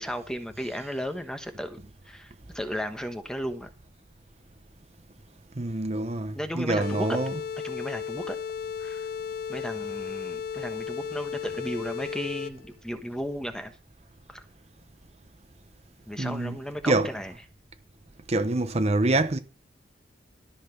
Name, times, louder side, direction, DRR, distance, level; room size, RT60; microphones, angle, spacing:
voice 1, 0.0-1.8 2.1-3.7 6.3-7.2 7.6-8.4 8.8-9.0 9.5-13.7 14.3-14.4 16.1-17.3, equal, 5° left, 1.1 m, -34 dB
voice 2, 5.6-7.3 16.2-16.6 16.9-17.1 18.3-19.4, right 2 dB, 35° right, 0.9 m, -26 dB
sound 1, 6.8-12.8, left 7 dB, 55° left, 0.4 m, -35 dB
13.5 x 5.9 x 5.8 m
head